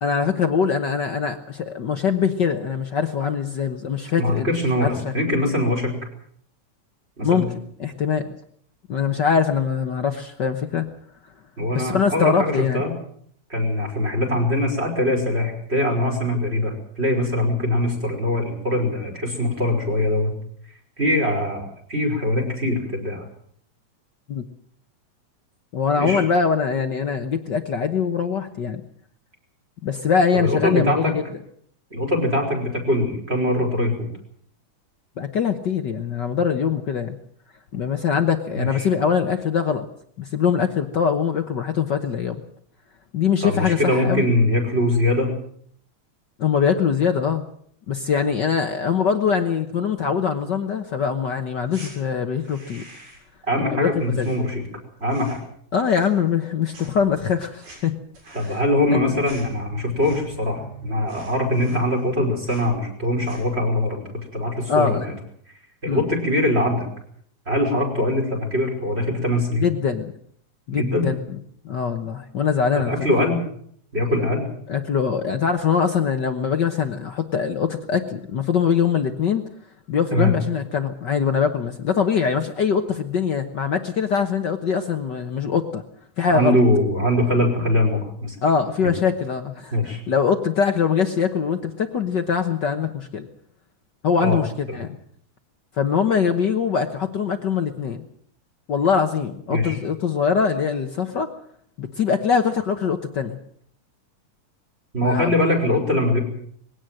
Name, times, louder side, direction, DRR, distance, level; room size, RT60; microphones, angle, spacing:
voice 1, 0.0-5.1 7.2-7.5 7.8-8.4 8.9-10.9 11.7-12.8 24.3-24.4 25.7-28.8 29.8-31.2 35.2-37.2 37.7-39.8 40.2-42.4 43.1-44.3 46.4-47.4 47.9-52.8 53.6-54.3 55.7-58.0 58.5-58.6 58.9-59.2 64.7-65.1 65.9-66.0 69.6-70.1 70.7-71.2 71.6-73.0 74.7-79.4 79.9-85.8 86.2-86.6 88.4-93.3 94.0-95.0 95.8-98.0 98.7-101.3 101.8-103.4 105.0-105.4, left 6 dB, 55° left, 7 dB, 1.2 m, -23 dB
voice 2, 4.2-5.9 7.2-7.5 11.6-12.9 13.5-20.3 21.0-23.2 26.0-26.2 30.3-31.1 31.9-34.1 38.6-38.7 43.4-45.3 53.5-54.6 55.0-55.4 58.3-65.1 65.8-66.9 67.5-69.7 70.7-71.1 72.7-73.4 73.9-74.5 80.1-80.3 86.3-88.4 89.7-90.0 94.2-94.4 94.7-94.8 99.5-99.8 104.9-106.2, left 1 dB, 20° right, 2 dB, 5.4 m, -22 dB
sound 1, 51.7-51.9 52.4-53.3 53.6-54.8 55.0-55.5 55.8-56.5 56.7-60.5 60.8-60.9 61.1-62.2 62.4-62.7 63.1-63.6, right 1 dB, 85° right, 8.4 m, -46 dB
sound 2, 58.7-61.5, right 3 dB, 50° right, 6.8 m, -43 dB
21.0 x 17.0 x 7.7 m, 0.64 s
omnidirectional pair, 3.4 m